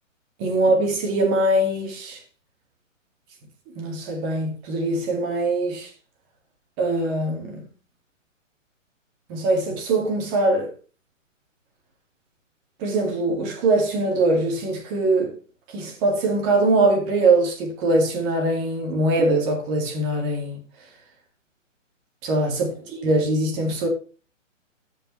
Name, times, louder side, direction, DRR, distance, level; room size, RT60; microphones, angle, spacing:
voice 1, 0.4-2.2 3.8-5.9 6.8-7.6 9.3-10.7 12.8-15.3 15.7-20.6 22.2-23.9, right 2 dB, 25° right, 2.4 m, -22 dB
16.0 x 5.4 x 3.2 m
hypercardioid pair, 155°, 38 cm